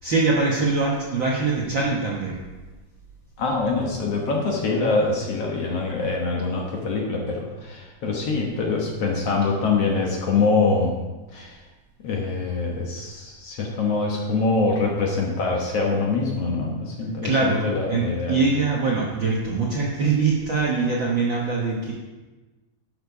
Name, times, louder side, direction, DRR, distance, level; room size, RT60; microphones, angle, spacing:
voice 1, 0.0-2.4 17.2-21.9, right 4 dB, 60° right, -4 dB, 1.3 m, -23 dB
voice 2, 3.4-11.0 11.3-11.6 12.0-18.4, left 3 dB, 60° left, -1 dB, 1.9 m, -24 dB
12.0 x 6.6 x 4.7 m, 1.2 s
omnidirectional pair, 3.7 m